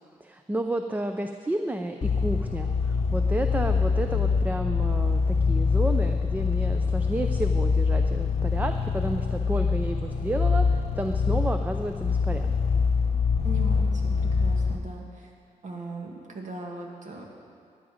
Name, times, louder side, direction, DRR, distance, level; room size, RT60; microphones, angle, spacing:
voice 1, 0.2-12.5, right 1 dB, 10° right, 6 dB, 0.5 m, -31 dB
sound 1, 2.0-14.8, left 5 dB, 40° left, 1.1 m, -24 dB
voice 2, 13.4-15.3 15.6-17.2, right 3 dB, 55° right, 0 dB, 2.2 m, -39 dB
15.5 x 10.5 x 5.1 m, 2.3 s
cardioid pair, 115°, 15 cm